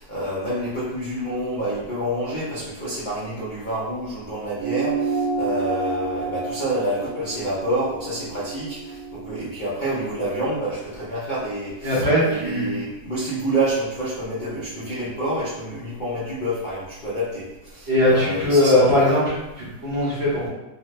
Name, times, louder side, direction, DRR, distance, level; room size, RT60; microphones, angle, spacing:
voice 1, 0.0-19.1, right 1 dB, 75° left, -9 dB, 0.4 m, -28 dB
sound 1, 4.6-9.4, right 4 dB, 85° right, 1.2 m, -29 dB
voice 2, 11.8-12.7 17.9-20.5, left 1 dB, 55° right, -7 dB, 0.8 m, -20 dB
3.1 x 2.1 x 3.1 m, 0.99 s
omnidirectional pair, 1.8 m